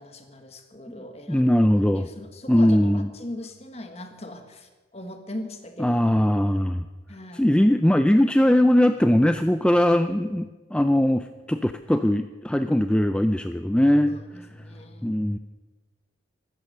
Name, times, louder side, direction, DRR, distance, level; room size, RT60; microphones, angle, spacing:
voice 1, 0.0-1.7 1.9-6.0 7.1-7.5 14.1-15.1, left 1 dB, 35° left, 6 dB, 1.5 m, -40 dB
voice 2, 1.3-2.1 2.5-3.1 5.8-6.8 7.3-14.5 15.0-15.4, left 1 dB, 5° left, 9 dB, 0.4 m, -20 dB
15.0 x 12.5 x 6.6 m, 1.3 s
head